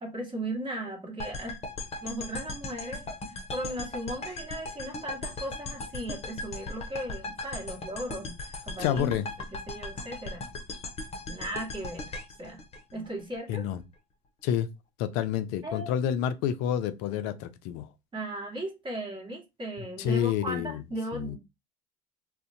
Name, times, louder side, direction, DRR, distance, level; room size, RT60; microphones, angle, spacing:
voice 1, 0.0-1.6 2.0-9.1 9.7-10.5 11.3-12.6 12.9-13.7 15.6-16.0 18.1-21.4, right 1 dB, 25° right, 1.3 m, -37 dB
sound 1, 1.2-13.4, left 2 dB, 35° left, 0.7 m, -38 dB
voice 2, 8.8-9.3 13.5-13.8 14.4-14.7 15.0-17.9 19.8-20.8 21.1-21.4, left 9 dB, 65° left, 0.4 m, -29 dB
2.4 x 2.1 x 2.6 m
hypercardioid pair, 70°, 19 cm